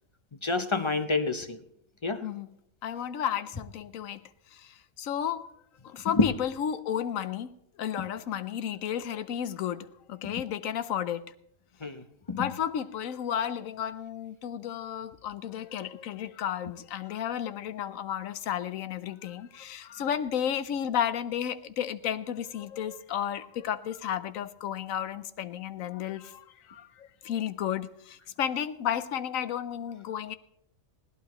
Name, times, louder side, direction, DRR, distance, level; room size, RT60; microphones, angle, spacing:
voice 1, 0.4-1.6 2.0-2.2 6.2-6.3 8.0-8.1 10.2-10.3 11.8-12.5, left 3 dB, 35° left, 10 dB, 0.4 m, -28 dB
voice 2, 2.8-4.2 4.5-5.5 5.8-11.2 12.3-30.4, left 9 dB, 85° left, 14 dB, 1.1 m, -33 dB
20.0 x 17.5 x 3.0 m, 0.75 s
omnidirectional pair, 1.4 m